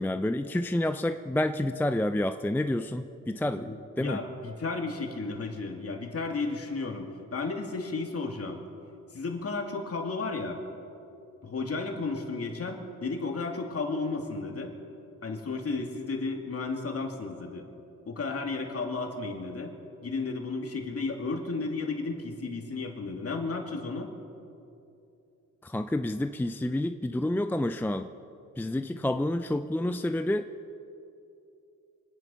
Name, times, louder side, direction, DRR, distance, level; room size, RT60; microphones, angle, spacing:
voice 1, 0.0-4.2 25.6-28.1 28.6-30.5, left 1 dB, 5° left, 9 dB, 0.5 m, -29 dB
voice 2, 3.6-8.6 9.1-10.6 11.4-14.7 15.2-17.6 18.0-19.7 20.0-24.1, left 3 dB, 45° left, 2 dB, 2.6 m, -33 dB
25.0 x 9.9 x 5.6 m, 2.8 s
cardioid pair, 70°, 33 cm